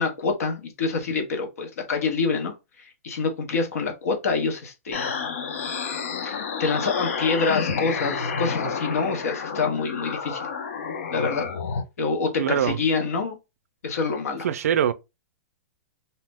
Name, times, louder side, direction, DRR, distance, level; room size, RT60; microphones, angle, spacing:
voice 1, 0.0-2.5 3.0-5.1 6.2-10.5 11.1-11.5 12.0-13.4 13.8-14.5, left 4 dB, 85° left, 0.9 m, -26 dB
sound 1, 4.9-11.8, left 5 dB, 65° left, 0.6 m, -30 dB
voice 2, 12.4-12.8 14.4-14.9, right 9 dB, 90° right, 0.4 m, -22 dB
2.7 x 2.0 x 3.4 m
supercardioid pair, 180°, 8 cm